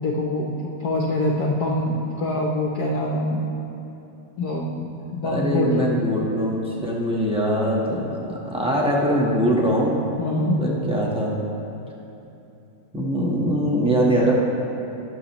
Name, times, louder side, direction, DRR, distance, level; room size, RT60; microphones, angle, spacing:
voice 1, 0.0-0.5 0.8-3.5 4.4-5.9 10.2-10.6, left 1 dB, 65° left, -1 dB, 1.0 m, -24 dB
voice 2, 5.2-10.0 10.6-11.3 12.9-14.3, equal, 10° right, -5 dB, 0.3 m, -22 dB
20.5 x 7.1 x 3.0 m, 2.9 s
omnidirectional pair, 2.4 m